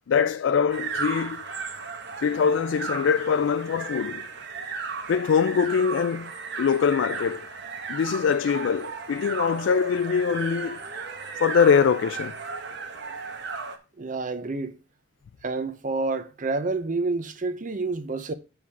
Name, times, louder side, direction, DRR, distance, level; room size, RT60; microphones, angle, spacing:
voice 1, 0.1-1.4 2.2-4.3 5.1-7.5 7.9-10.8 11.3-12.3, left 6 dB, 75° left, 0.3 m, -23 dB
sound 1, 0.7-13.8, right 4 dB, 60° right, 1.0 m, -35 dB
voice 2, 14.0-14.8 15.4-18.3, right 3 dB, 45° right, 0.7 m, -28 dB
7.2 x 4.7 x 4.7 m
head